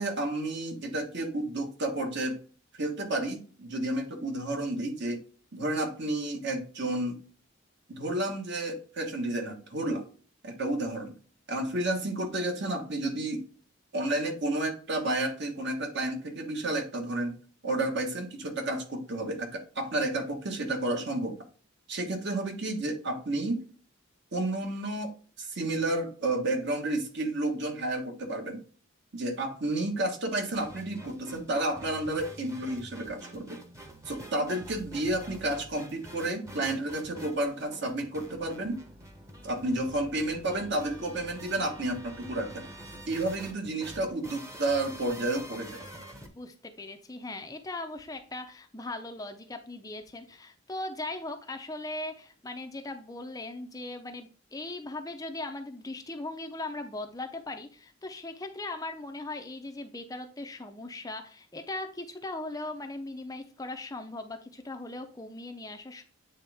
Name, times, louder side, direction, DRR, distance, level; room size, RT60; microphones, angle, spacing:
voice 1, 0.0-2.4 2.7-5.2 5.5-7.2 7.9-10.1 10.4-11.1 11.5-13.4 13.9-17.3 17.6-21.4 21.9-23.6 24.3-25.1 25.4-28.6 29.1-33.6 34.1-38.8 39.4-42.6 43.1-45.8, right 2 dB, 55° right, 4 dB, 1.3 m, -31 dB
sound 1, 30.5-46.3, equal, 15° right, 0.9 m, -47 dB
voice 2, 46.3-66.0, left 2 dB, 15° left, 6 dB, 0.5 m, -39 dB
8.5 x 3.6 x 3.4 m, 0.40 s
head